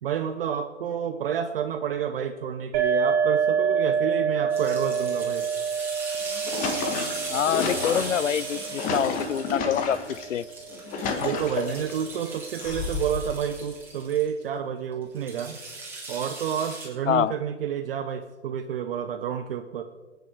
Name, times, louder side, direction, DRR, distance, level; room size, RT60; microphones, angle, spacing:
voice 1, 0.0-5.5 11.2-15.6 16.1-19.8, right 8 dB, 50° right, 8 dB, 0.9 m, -29 dB
sound 1, 2.7-10.2, right 6 dB, 30° right, 3.7 m, -27 dB
sound 2, 4.5-14.3 15.2-16.9, right 3 dB, 5° right, 3.5 m, -38 dB
sound 3, 6.1-10.2 10.7-12.0 12.6-13.3, left 4 dB, 20° left, 1.5 m, -31 dB
voice 2, 7.3-10.0 10.3-10.5 17.1-17.3, left 9 dB, 85° left, 21 dB, 0.6 m, -25 dB
20.0 x 9.3 x 4.6 m, 1.4 s
hypercardioid pair, 135°, 36 cm